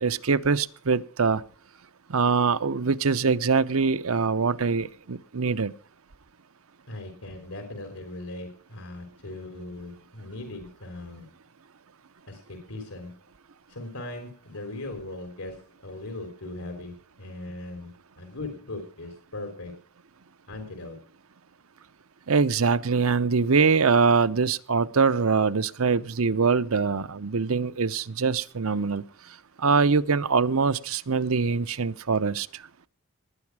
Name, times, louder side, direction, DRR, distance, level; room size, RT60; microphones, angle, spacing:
voice 1, 0.0-1.4 2.1-5.7 22.3-29.0 29.6-32.6, right 5 dB, 80° right, 13 dB, 0.8 m, -23 dB
voice 2, 6.9-11.3 12.3-13.1 13.7-17.9 18.2-19.7 20.5-21.0, left 2 dB, 90° left, 5 dB, 3.7 m, -39 dB
19.5 x 9.6 x 4.8 m, 0.42 s
head